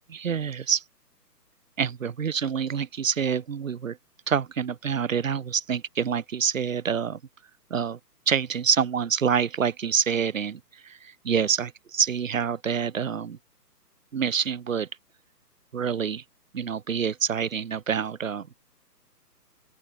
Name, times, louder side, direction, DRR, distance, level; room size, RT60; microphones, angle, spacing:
voice 1, 0.1-0.8 1.8-4.0 4.3-7.2 7.7-8.0 8.3-13.4 14.1-14.9 15.7-16.2 16.5-18.5, right 7 dB, 50° right, 2.3 m, -27 dB
open air
figure-of-eight pair, 140°, 49 cm